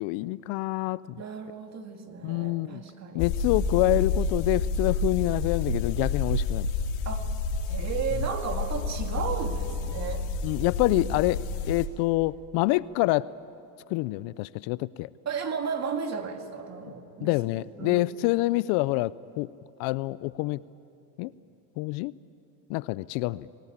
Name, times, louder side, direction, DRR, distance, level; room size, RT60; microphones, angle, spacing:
voice 1, 0.0-1.0 2.2-2.8 3.1-6.7 10.4-13.3 13.9-15.1 17.2-19.5 19.8-20.6 21.2-21.3 21.8-22.1 22.7-23.5, left 19 dB, 60° left, 19 dB, 0.5 m, -26 dB
voice 2, 1.2-3.3 7.1-7.3 7.6-10.3 11.0-11.1 15.3-17.3 17.8-18.1, right 6 dB, 35° right, 5 dB, 2.2 m, -34 dB
sound 1, 3.2-11.9, left 3 dB, 85° left, 2.4 m, -29 dB
25.0 x 18.5 x 8.7 m, 2.7 s
supercardioid pair, 120°, 46 cm